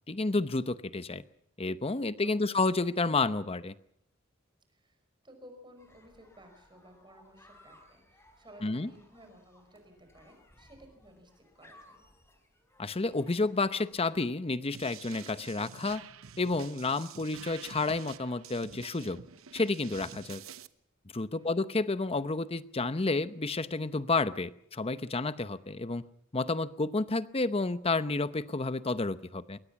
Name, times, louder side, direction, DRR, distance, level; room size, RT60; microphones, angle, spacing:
voice 1, 0.1-1.2 1.6-3.7 8.6-8.9 12.8-16.0 16.4-19.2 19.5-20.4 21.1-26.0 26.3-29.6, left 3 dB, 30° left, 14 dB, 0.8 m, -30 dB
voice 2, 2.2-2.6 4.7-12.0 21.4-21.9, equal, 25° right, 6 dB, 5.4 m, -56 dB
sound 1, 5.8-14.4, left 1 dB, 15° left, 4.2 m, -61 dB
sound 2, 14.7-20.7, right 7 dB, 80° right, 0.9 m, -48 dB
22.5 x 18.5 x 7.2 m, 0.70 s
head